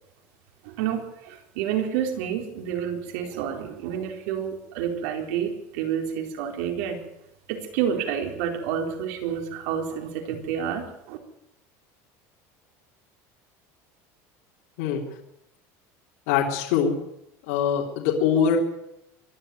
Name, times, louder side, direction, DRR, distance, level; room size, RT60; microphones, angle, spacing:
voice 1, 0.6-7.0 7.5-11.2, right 8 dB, 80° right, 4 dB, 4.1 m, -29 dB
voice 2, 16.3-16.9 17.5-18.6, left 8 dB, 75° left, -1 dB, 3.5 m, -23 dB
24.5 x 11.5 x 9.3 m, 0.85 s
cardioid pair, 150°, 8 cm